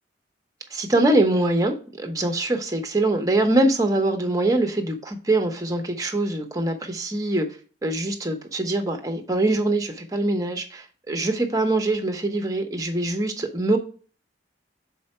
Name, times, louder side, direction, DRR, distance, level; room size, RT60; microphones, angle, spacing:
voice 1, 0.7-7.5 7.8-13.8, right 2 dB, 20° right, 5 dB, 0.9 m, -23 dB
7.0 x 4.5 x 4.3 m, 0.39 s
head